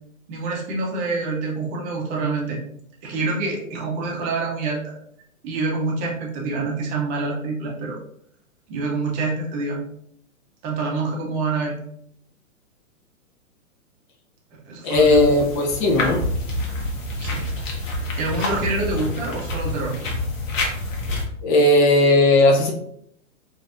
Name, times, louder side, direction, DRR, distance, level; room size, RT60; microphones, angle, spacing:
voice 1, 0.3-2.6 3.0-4.9 5.4-8.0 8.7-9.8 10.6-11.8 14.7-15.3 17.2-17.5 17.8-19.9 20.7-20.8, right 3 dB, 20° right, -2 dB, 0.6 m, -26 dB
voice 2, 14.8-16.2 21.4-22.7, left 2 dB, 35° left, 1 dB, 0.7 m, -16 dB
sound 1, 14.9-21.2, left 1 dB, 65° left, 1.1 m, -27 dB
4.5 x 2.6 x 2.5 m, 0.70 s
hypercardioid pair, 135°, 42 cm